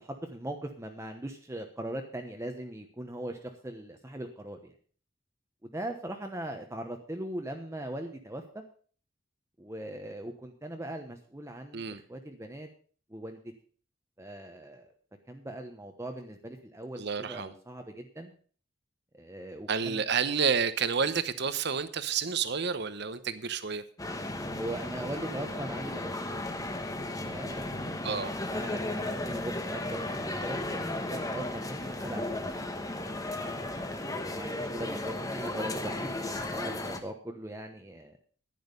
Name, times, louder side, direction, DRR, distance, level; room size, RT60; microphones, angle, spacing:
voice 1, 0.0-4.7 5.6-8.6 9.6-12.7 13.1-13.4 14.2-14.9 15.3-18.3 19.1-20.1 24.5-26.3 27.2-27.9 28.5-32.4 33.2-36.1 36.4-38.1, right 1 dB, 15° right, 4 dB, 1.0 m, -40 dB
voice 2, 17.0-17.5 19.7-23.8 28.0-28.3, right 6 dB, 60° right, 12 dB, 1.0 m, -30 dB
sound 1, 24.0-37.0, left 2 dB, 20° left, 1.2 m, -35 dB
11.0 x 10.5 x 5.3 m, 0.43 s
head